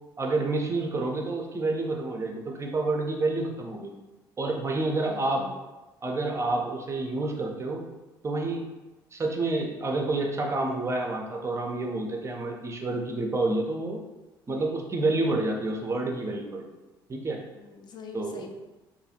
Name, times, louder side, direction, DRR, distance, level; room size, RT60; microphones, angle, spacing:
voice 1, 0.2-3.9 4.4-5.4 6.0-7.8 8.2-8.7 9.1-14.0 14.5-16.7 17.1-17.4 18.1-18.5, right 2 dB, 25° right, 1 dB, 0.4 m, -29 dB
voice 2, 5.0-5.6 17.5-18.5, left 4 dB, 40° left, 3 dB, 0.3 m, -44 dB
2.7 x 2.3 x 2.6 m, 1.1 s
figure-of-eight pair, 55°, 12 cm